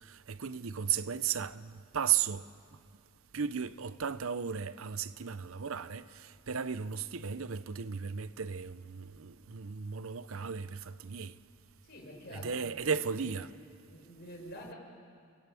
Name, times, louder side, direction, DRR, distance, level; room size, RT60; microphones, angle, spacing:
voice 1, 0.0-2.4 3.3-11.3 12.3-13.5, right 7 dB, 70° right, 0.7 m, -35 dB
voice 2, 11.8-12.5 13.0-13.3 13.9-14.7, equal, 45° left, 5.8 m, -47 dB
29.5 x 20.0 x 8.4 m
head